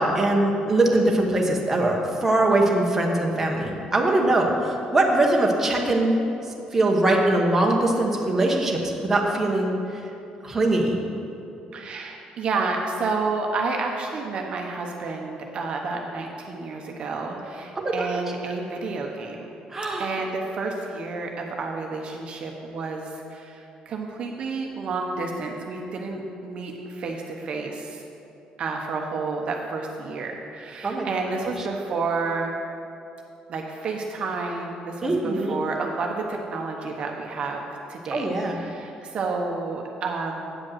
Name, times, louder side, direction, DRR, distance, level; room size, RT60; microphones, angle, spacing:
voice 1, 0.0-6.2 6.7-10.0 10.4-11.0 17.8-18.2 19.7-20.1 30.8-31.1 35.0-35.6 38.1-38.6, right 2 dB, 15° right, -1 dB, 1.0 m, -22 dB
voice 2, 11.7-19.5 20.0-28.0 28.6-32.5 33.5-40.6, right 4 dB, 45° right, 1 dB, 0.8 m, -30 dB
8.6 x 5.2 x 7.7 m, 2.7 s
cardioid pair, 160°, 3 cm